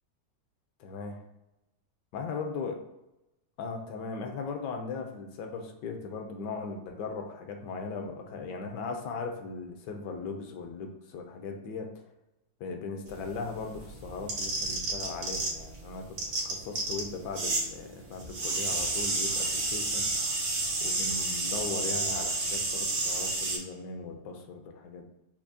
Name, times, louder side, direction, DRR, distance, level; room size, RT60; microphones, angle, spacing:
voice 1, 0.8-1.2 2.1-2.8 3.6-12.0 12.6-20.1 20.8-25.1, left 4 dB, 75° left, 4 dB, 1.2 m, -38 dB
sound 1, 13.1-15.8 16.0-17.7 17.9-23.6, right 2 dB, 90° right, 1.8 m, -30 dB
5.8 x 2.1 x 2.6 m, 0.94 s
omnidirectional pair, 2.0 m